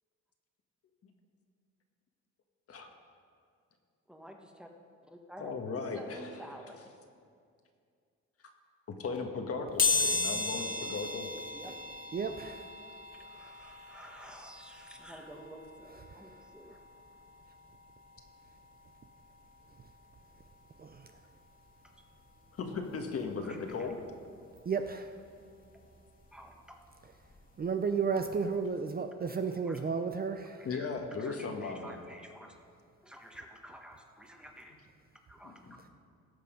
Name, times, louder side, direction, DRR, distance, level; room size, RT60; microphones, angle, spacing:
voice 1, 4.1-4.7 5.1-6.9 11.5-11.7 13.1-16.8 23.4-23.9 26.3-26.8 29.7-29.8 30.7-30.9 31.2-32.5 33.0-34.7 35.3-35.6, equal, 5° right, 2 dB, 1.3 m, -50 dB
voice 2, 5.4-6.4 8.9-11.3 22.6-24.0 30.6-32.0 35.4-35.8, left 4 dB, 50° left, 4 dB, 1.5 m, -37 dB
sound 1, 9.8-20.5 20.9-21.0 22.2-22.3 22.6-24.6 25.0-27.6 28.0-28.2 28.5-28.6, left 4 dB, 30° left, 1.8 m, -37 dB
voice 3, 12.1-12.7 16.1-16.4 20.8-21.1 24.6-25.2 27.6-30.7, right 5 dB, 30° right, 7 dB, 0.5 m, -33 dB
17.5 x 6.8 x 5.2 m, 2.3 s
cardioid pair, 90°, 30 cm